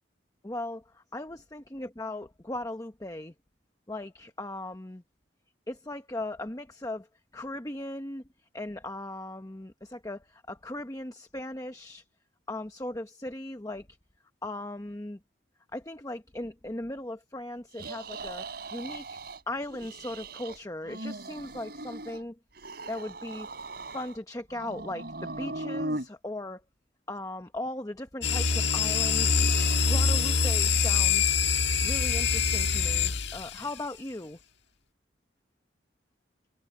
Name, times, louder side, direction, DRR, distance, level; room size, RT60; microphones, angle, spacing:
voice 1, 0.4-3.3 3.9-5.0 5.7-7.1 7.3-8.2 8.5-12.0 12.5-13.9 14.4-15.2 15.7-19.1 19.5-22.4 22.9-23.5 23.9-26.6 27.1-29.4 29.9-31.4 31.8-34.4, left 1 dB, 20° left, 1.0 m, -38 dB
sound 1, 17.7-19.4 19.7-20.6 20.8-22.2 22.6-24.2 24.5-26.1, right 2 dB, 55° right, 5.1 m, -38 dB
sound 2, 28.2-33.7, left 5 dB, 70° left, 1.6 m, -25 dB
head